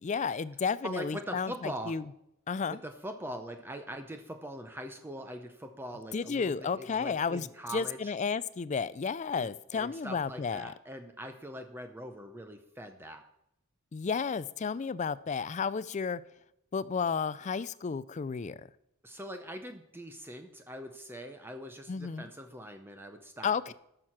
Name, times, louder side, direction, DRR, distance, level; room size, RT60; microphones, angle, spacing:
voice 1, 0.0-2.0 2.5-2.8 6.1-7.5 7.7-10.7 13.9-16.2 16.7-18.6 21.9-22.3 23.4-23.7, left 5 dB, 30° left, 18 dB, 0.3 m, -32 dB
voice 2, 0.8-2.0 2.7-8.1 9.3-13.2 19.0-23.7, equal, 10° right, 6 dB, 0.6 m, -42 dB
15.0 x 6.5 x 5.9 m, 0.82 s
head